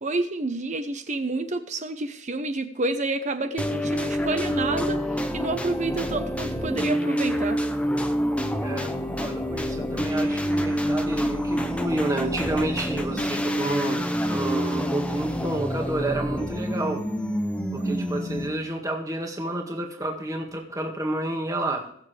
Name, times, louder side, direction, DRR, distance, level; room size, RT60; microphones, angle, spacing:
voice 1, 0.0-7.6, right 2 dB, 30° right, 8 dB, 0.9 m, -29 dB
sound 1, 3.6-18.7, equal, 5° left, 0.8 m, -27 dB
voice 2, 8.6-17.0 17.7-21.9, right 1 dB, 15° right, 2 dB, 1.8 m, -30 dB
20.0 x 7.3 x 3.4 m, 0.68 s
head